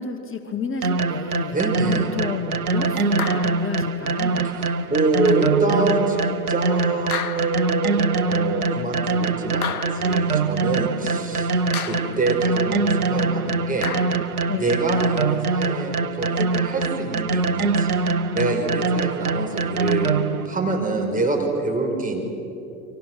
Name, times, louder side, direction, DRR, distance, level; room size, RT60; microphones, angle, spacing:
voice 1, 0.0-1.6 2.2-4.5 14.5-14.7, left 5 dB, 30° left, 6 dB, 2.2 m, -31 dB
sound 1, 0.8-20.5, right 4 dB, 90° right, 0.9 m, -23 dB
voice 2, 1.5-2.1 4.4-6.2 6.5-11.5 11.8-13.9 14.6-17.9 18.3-20.1 20.4-22.2, right 3 dB, 20° right, 1 dB, 5.2 m, -25 dB
sound 2, 3.2-3.8 5.3-5.4 7.1-7.8 9.6-10.3 11.7-12.3 13.8-14.4, left 7 dB, 85° left, 0.9 m, -32 dB
30.0 x 24.5 x 6.3 m, 2.9 s
figure-of-eight pair, 70°, 43 cm